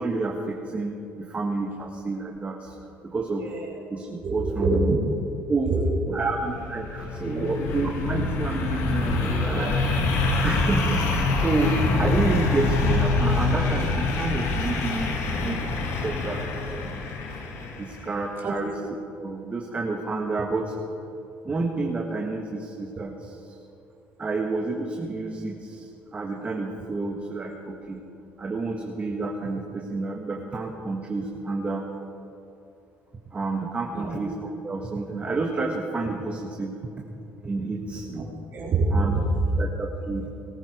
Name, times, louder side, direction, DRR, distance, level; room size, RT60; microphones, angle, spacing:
voice 1, 0.0-2.7 3.0-3.4 3.9-4.9 5.5-5.7 6.1-9.8 10.4-15.6 16.0-17.0 17.8-18.8 19.2-20.7 21.4-23.5 24.2-28.0 28.4-31.9 33.3-37.1 37.4-38.1 38.9-39.2 39.6-40.3, right 3 dB, 25° right, 1 dB, 1.4 m, -29 dB
voice 2, 3.4-3.8 4.2-5.0 5.6-6.1 7.3-7.4 9.5-9.7 18.4-18.5 33.9-34.1 38.1-38.2 38.5-39.2, right 3 dB, 50° right, -4 dB, 3.2 m, -26 dB
sound 1, 6.4-18.1, left 3 dB, 70° left, 2.3 m, -25 dB
18.5 x 13.0 x 4.9 m, 2.8 s
cardioid pair, 100°, 5 cm